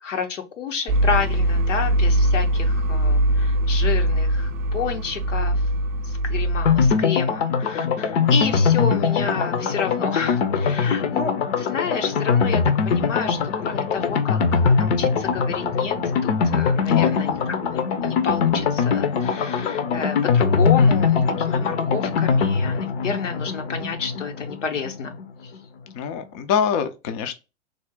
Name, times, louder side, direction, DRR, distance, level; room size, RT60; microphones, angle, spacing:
voice 1, 0.0-5.6 6.0-16.0 16.2-25.2, left 6 dB, 80° left, 1.0 m, -30 dB
sound 1, 0.9-6.9, right 1 dB, 35° right, 0.5 m, -21 dB
sound 2, 6.7-25.3 25.5-25.6 25.9-26.0, left 5 dB, 55° left, 0.7 m, -22 dB
voice 2, 16.9-17.3 26.0-27.3, left 7 dB, 30° left, 0.4 m, -25 dB
3.4 x 2.1 x 3.8 m
hypercardioid pair, 115°, 37 cm